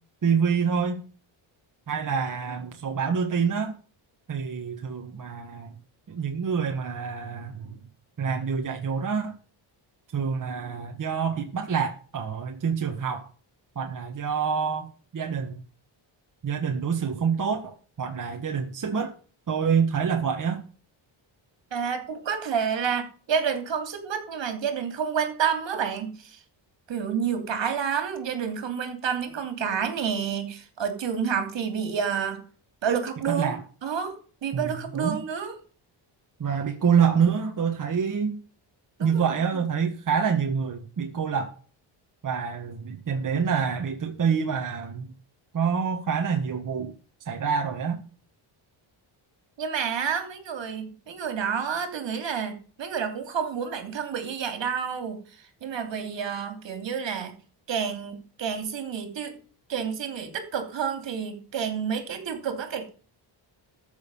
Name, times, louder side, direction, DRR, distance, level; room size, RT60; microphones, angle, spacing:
voice 1, 0.2-1.0 1.9-3.8 4.3-5.7 6.1-7.8 8.2-9.3 10.1-13.3 13.7-15.6 16.4-19.1 19.5-20.6 33.3-33.6 34.5-35.2 36.4-38.4 39.0-41.5 42.2-45.1 45.5-46.9 47.2-48.0, right 6 dB, 40° right, 1.6 m, -27 dB
voice 2, 21.7-26.4 26.9-32.4 32.8-33.5 33.8-35.6 39.0-39.4 49.6-57.3 57.7-59.4 59.7-62.9, right 7 dB, 60° right, 3.1 m, -29 dB
14.0 x 6.8 x 5.5 m
wide cardioid pair, 140°, 49 cm